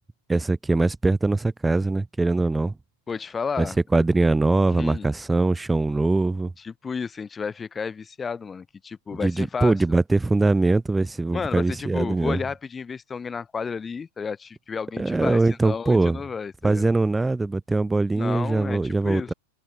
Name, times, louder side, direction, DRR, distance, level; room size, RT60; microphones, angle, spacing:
voice 1, 0.3-2.7 3.6-6.5 9.2-12.4 15.0-16.2 16.6-19.3, right 2 dB, 10° right, 0.3 m, -22 dB
voice 2, 3.1-3.8 4.8-5.1 6.6-9.8 11.3-16.9 18.1-19.3, left 5 dB, 15° left, 0.8 m, -32 dB
open air
figure-of-eight pair, 90°, 0 cm